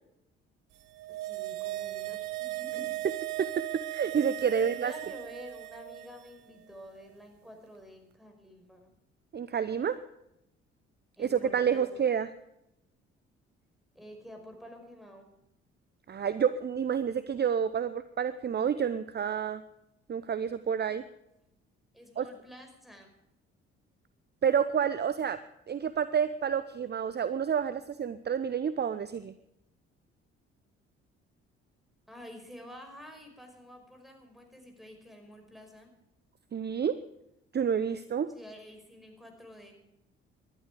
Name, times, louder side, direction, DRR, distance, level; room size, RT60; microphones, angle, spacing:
sound 1, 0.8-6.3 6.6-6.7, right 18 dB, 70° right, 1.1 m, -37 dB
voice 1, 1.1-3.0 4.5-8.9 11.2-12.0 13.9-15.3 21.9-23.1 32.1-35.9 38.3-39.7, equal, ahead, 3 dB, 5.5 m, -49 dB
voice 2, 3.9-4.9 9.3-10.0 11.2-12.3 16.1-19.6 20.1-21.0 22.2-22.3 24.4-25.4 25.7-29.3 36.5-37.0 37.5-38.3, right 7 dB, 30° right, 14 dB, 0.8 m, -29 dB
19.5 x 12.0 x 5.0 m, 0.83 s
figure-of-eight pair, 45°, 32 cm